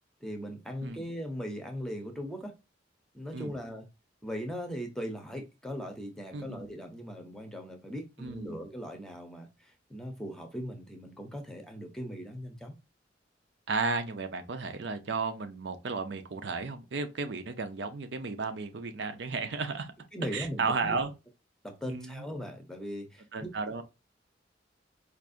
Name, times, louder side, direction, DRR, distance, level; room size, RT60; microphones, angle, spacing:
voice 1, 0.2-2.5 3.1-3.9 4.2-12.8 20.1-21.0 21.6-23.5, equal, 5° left, 0.7 m, -39 dB
voice 2, 6.3-6.7 8.2-8.6 13.7-19.9 20.3-21.1 21.8-22.2 23.3-23.8, right 4 dB, 70° right, 0.6 m, -34 dB
4.6 x 2.6 x 2.5 m
head